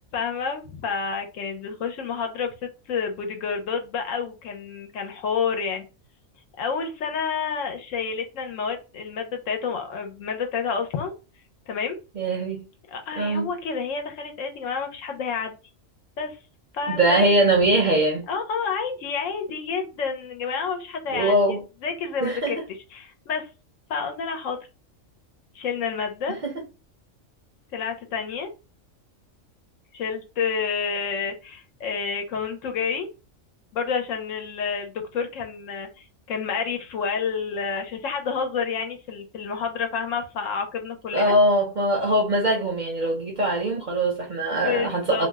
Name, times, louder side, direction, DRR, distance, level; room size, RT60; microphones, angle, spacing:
voice 1, 0.1-5.8 6.6-11.1 11.7-12.0 12.9-15.6 16.2-16.4 16.7-17.4 18.3-21.3 21.8-22.6 22.9-23.5 23.9-24.6 25.5-26.4 27.7-28.5 29.9-33.1 33.7-41.4 44.6-45.3, left 6 dB, 75° left, 1.0 m, -29 dB
voice 2, 12.2-12.6 13.2-13.5 16.9-18.2 21.1-21.6 22.2-22.6 26.4-26.5 41.1-45.3, right 1 dB, 50° right, 0.6 m, -22 dB
2.6 x 2.1 x 3.3 m
omnidirectional pair, 1.4 m